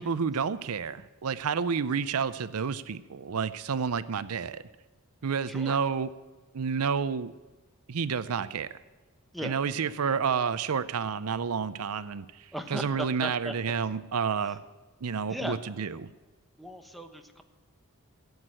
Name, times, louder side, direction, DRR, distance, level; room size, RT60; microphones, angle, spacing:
voice 1, 0.0-4.6 5.2-6.1 6.5-7.3 7.9-8.7 9.4-14.6 15.0-16.1, right 6 dB, 80° right, 15 dB, 0.6 m, -30 dB
voice 2, 5.2-5.8 9.3-9.5 12.5-13.5 14.4-14.6 15.3-15.6 16.6-17.4, equal, ahead, 6 dB, 1.0 m, -37 dB
15.5 x 8.1 x 8.8 m, 1.2 s
head